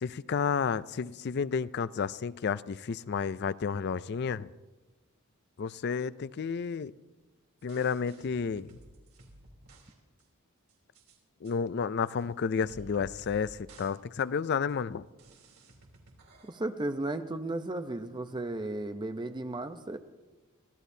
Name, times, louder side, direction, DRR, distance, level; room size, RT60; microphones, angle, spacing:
voice 1, 0.0-4.5 5.6-6.9 7.6-8.7 11.4-15.1, left 6 dB, 50° left, 16 dB, 0.4 m, -31 dB
sound 1, 7.6-9.9 10.2-10.3 10.7-11.2 11.4-11.5 12.2-12.3 12.6-13.4 13.7-13.9 14.2-14.3 14.7-14.8 15.2-16.6, right 1 dB, 80° right, 3.3 m, -54 dB
voice 2, 16.4-20.0, right 2 dB, 20° right, 8 dB, 0.7 m, -34 dB
24.0 x 15.5 x 2.7 m, 1.2 s
head